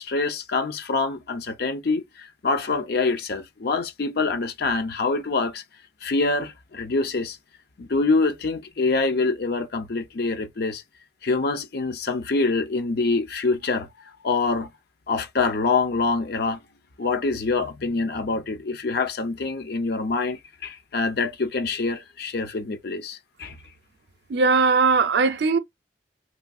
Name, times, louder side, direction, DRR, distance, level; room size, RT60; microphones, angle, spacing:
voice 1, 0.0-5.6 6.0-7.4 7.8-10.8 11.2-13.9 14.2-14.7 15.1-16.6 17.0-23.6, left 3 dB, 65° left, 0.6 m, -25 dB
voice 2, 24.3-25.6, right 4 dB, 70° right, 0.5 m, -19 dB
3.1 x 2.3 x 2.5 m
head